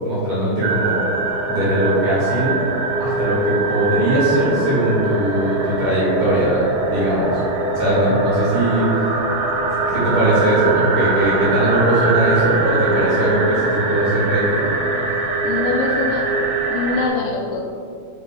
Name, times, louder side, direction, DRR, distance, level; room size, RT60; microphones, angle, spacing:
voice 1, 0.0-1.0 1.5-2.6 3.0-7.4 7.8-9.0 9.9-14.7, right 1 dB, 55° right, -8 dB, 2.7 m, -20 dB
sound 1, 0.6-17.1, right 3 dB, 75° right, 2.5 m, -22 dB
voice 2, 15.4-16.3 16.7-17.6, left 4 dB, 80° left, 0 dB, 2.5 m, -24 dB
7.6 x 4.9 x 3.6 m, 2.4 s
omnidirectional pair, 5.1 m